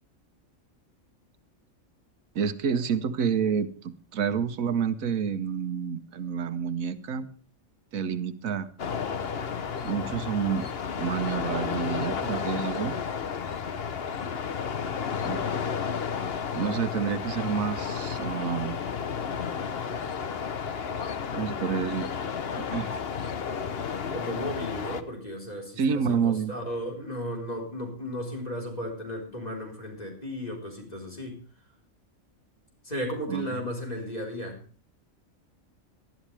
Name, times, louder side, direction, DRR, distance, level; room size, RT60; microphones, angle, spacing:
voice 1, 2.3-7.3 7.9-8.7 9.8-10.7 11.0-12.9 15.2-15.4 16.5-18.7 21.3-22.1 22.6-22.9 25.8-26.5 33.3-33.6, right 7 dB, 85° right, 11 dB, 1.4 m, -29 dB
sound 1, 8.8-25.0, left 6 dB, 50° left, 1.1 m, -32 dB
voice 2, 24.1-31.4 32.8-34.6, equal, 30° left, 0 dB, 4.5 m, -35 dB
19.0 x 12.5 x 3.4 m, 0.40 s
omnidirectional pair, 1.4 m